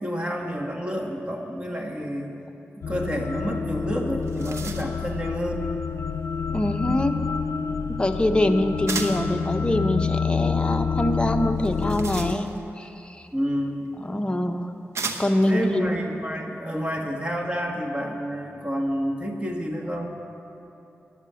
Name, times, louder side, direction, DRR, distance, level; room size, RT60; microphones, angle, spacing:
voice 1, 0.0-2.3 2.8-5.7 7.8-8.0 13.3-13.9 15.5-20.2, equal, 20° right, 2 dB, 1.6 m, -29 dB
sound 1, 2.8-12.3, left 5 dB, 80° left, 0.4 m, -28 dB
sound 2, 3.7-3.8 4.1-5.1 8.9-9.3 11.6-12.8 13.9-14.0 14.9-15.5, right 4 dB, 75° right, 1.0 m, -34 dB
voice 2, 6.5-7.2 7.9-12.5 12.8-13.3 14.1-14.7 15.2-15.9, left 1 dB, 20° left, 5 dB, 0.8 m, -24 dB
13.0 x 9.3 x 7.0 m, 2.8 s
wide cardioid pair, 75°, 5 cm